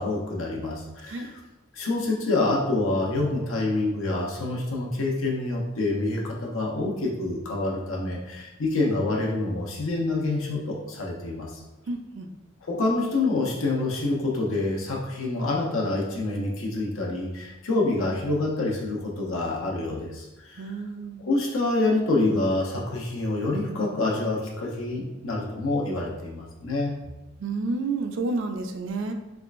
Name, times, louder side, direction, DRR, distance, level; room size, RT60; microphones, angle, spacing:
voice 1, 0.0-1.4 1.7-11.6 12.6-20.7 21.2-26.9, left 2 dB, 75° left, -2 dB, 0.8 m, -27 dB
voice 2, 11.9-12.3 20.6-21.2 27.4-29.1, right 3 dB, 65° right, 5 dB, 0.4 m, -30 dB
3.6 x 3.2 x 2.5 m, 1.0 s
head